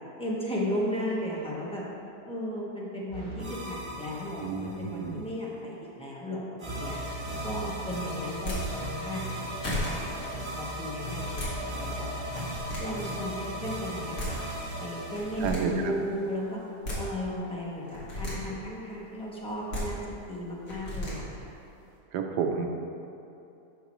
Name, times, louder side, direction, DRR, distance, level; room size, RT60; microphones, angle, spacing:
voice 1, 0.2-1.8 2.3-7.0 7.4-9.3 9.6-12.4 12.8-14.4 14.8-16.6 16.9-20.0 20.3-21.5, left 1 dB, 5° left, -5 dB, 0.9 m, -35 dB
sound 1, 3.1-5.0 6.6-16.3, right 1 dB, 25° right, 0.7 m, -37 dB
voice 2, 4.4-5.2 15.4-15.9 22.1-22.7, right 6 dB, 80° right, 4 dB, 1.2 m, -30 dB
sound 2, 8.4-8.6 9.3-9.4 9.6-9.9 11.1-11.5 12.2-12.8 13.9-14.0 14.2-14.3 15.1-15.6 16.6-17.0 17.9-18.3 19.5-19.8 20.7-21.1, left 1 dB, 65° left, 2.3 m, -34 dB
10.0 x 5.9 x 3.1 m, 2.8 s
omnidirectional pair, 1.8 m